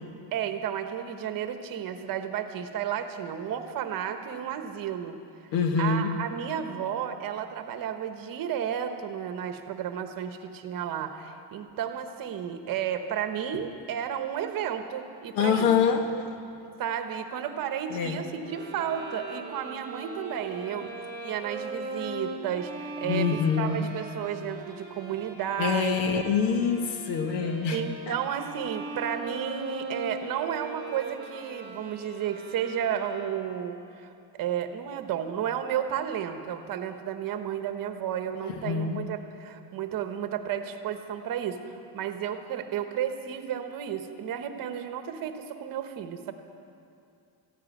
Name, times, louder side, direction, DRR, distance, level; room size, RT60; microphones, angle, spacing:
voice 1, 0.3-5.2 5.8-15.7 16.8-20.9 21.2-22.7 23.0-26.0 27.7-34.1 34.4-46.3, right 9 dB, 50° right, 7 dB, 1.2 m, -32 dB
voice 2, 5.5-6.1 15.3-16.1 17.9-18.2 23.0-23.9 25.6-28.1 38.4-39.0, left 6 dB, 75° left, 6 dB, 1.6 m, -25 dB
Bowed string instrument, 18.4-33.7, right 3 dB, 25° right, 2.2 m, -40 dB
15.0 x 9.7 x 9.4 m, 2.5 s
cardioid pair, 135°, 43 cm